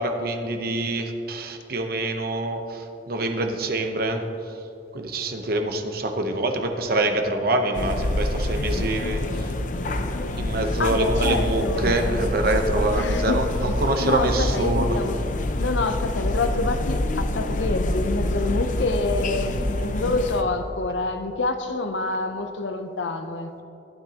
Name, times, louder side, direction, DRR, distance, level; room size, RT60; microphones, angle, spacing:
voice 1, 0.0-4.2 4.9-15.0, right 2 dB, 55° right, 5 dB, 0.9 m, -26 dB
sound 1, 7.7-20.4, left 1 dB, 45° left, 0.5 m, -26 dB
voice 2, 10.8-11.9 12.9-13.4 14.0-15.2 15.6-23.6, left 3 dB, 85° left, 7 dB, 0.6 m, -27 dB
15.0 x 9.0 x 2.9 m, 2.8 s
head